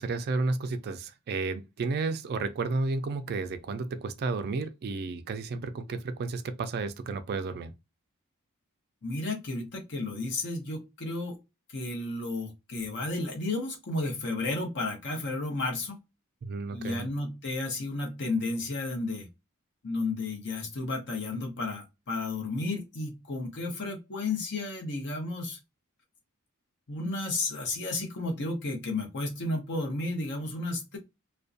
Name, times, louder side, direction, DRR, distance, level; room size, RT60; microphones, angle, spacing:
voice 1, 0.0-7.7 16.4-17.1, right 3 dB, 45° right, 0.3 m, -32 dB
voice 2, 9.0-11.4 11.7-16.0 16.7-19.3 19.8-25.6 26.9-31.0, left 2 dB, 55° left, 0.8 m, -32 dB
2.5 x 2.2 x 2.4 m
head